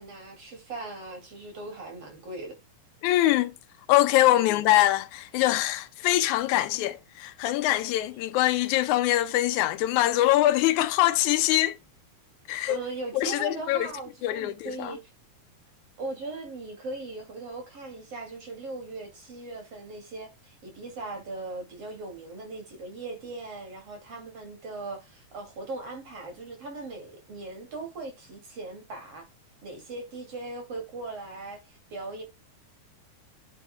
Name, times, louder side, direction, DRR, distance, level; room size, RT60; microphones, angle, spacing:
voice 1, 0.0-2.6 4.4-4.7 12.7-15.0 16.0-29.3 29.6-32.2, right 2 dB, 55° right, 3.3 m, -39 dB
voice 2, 3.0-3.5 3.9-11.8 12.5-12.8 13.1-13.9 14.2-15.0, left 15 dB, 85° left, 2.0 m, -23 dB
9.8 x 8.9 x 2.2 m
omnidirectional pair, 3.4 m